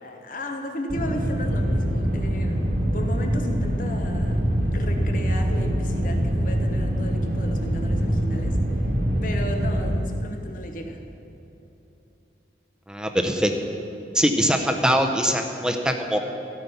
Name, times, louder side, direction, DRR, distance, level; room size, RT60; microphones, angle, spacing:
voice 1, 0.0-4.4 4.7-8.6 9.2-11.0, left 1 dB, 50° left, 4 dB, 1.0 m, -35 dB
sound 1, 0.9-10.0, equal, 50° right, 1.2 m, -24 dB
voice 2, 12.9-13.5 14.1-16.2, equal, 5° right, 4 dB, 0.7 m, -22 dB
15.0 x 5.7 x 6.9 m, 3.0 s
head